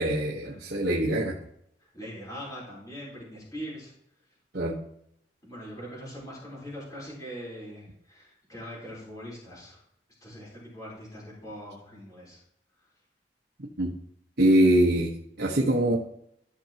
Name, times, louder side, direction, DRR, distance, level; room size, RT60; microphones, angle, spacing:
voice 1, 0.0-1.3 4.5-4.8 13.8-13.9 14.4-15.1 15.4-16.0, right 1 dB, 65° right, -4 dB, 1.3 m, -23 dB
voice 2, 1.9-3.9 5.4-9.8 10.2-12.4, equal, 20° left, -7 dB, 4.0 m, -42 dB
14.0 x 5.8 x 2.9 m, 0.71 s
head